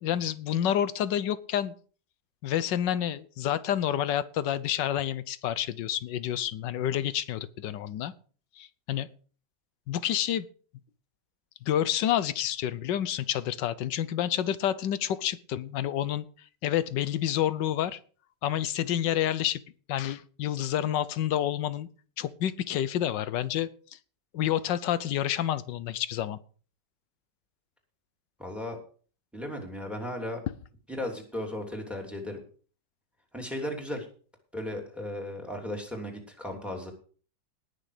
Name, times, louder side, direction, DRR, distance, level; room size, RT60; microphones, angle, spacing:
voice 1, 0.0-1.7 2.4-8.1 8.6-9.1 9.9-10.5 11.6-16.2 16.6-18.0 18.4-19.6 19.9-21.9 22.2-23.7 24.3-26.4, left 11 dB, 90° left, 16 dB, 1.5 m, -29 dB
voice 2, 28.4-28.8 29.3-30.4 30.9-32.4 33.3-34.1 34.5-36.9, left 1 dB, ahead, 2 dB, 2.9 m, -35 dB
19.0 x 6.6 x 4.9 m, 0.42 s
omnidirectional pair, 1.9 m